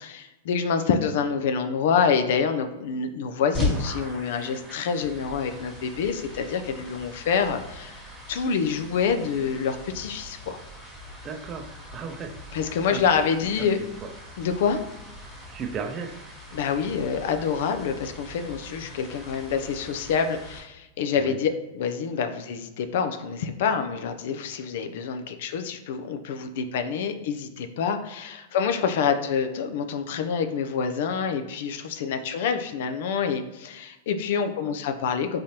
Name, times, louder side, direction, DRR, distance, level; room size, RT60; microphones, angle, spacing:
voice 1, 0.0-8.0 8.3-10.6 12.5-13.8 14.4-14.8 16.5-35.4, left 6 dB, 65° left, 7 dB, 0.4 m, -27 dB
sound 1, 3.5-20.6, left 1 dB, 5° left, 1.4 m, -38 dB
voice 2, 11.2-11.7 11.9-12.3 12.9-13.3 13.6-14.1 15.5-16.1 21.2-21.4, right 6 dB, 30° right, 4 dB, 0.5 m, -35 dB
3.8 x 3.1 x 2.8 m, 0.98 s
hypercardioid pair, 120°, 0 cm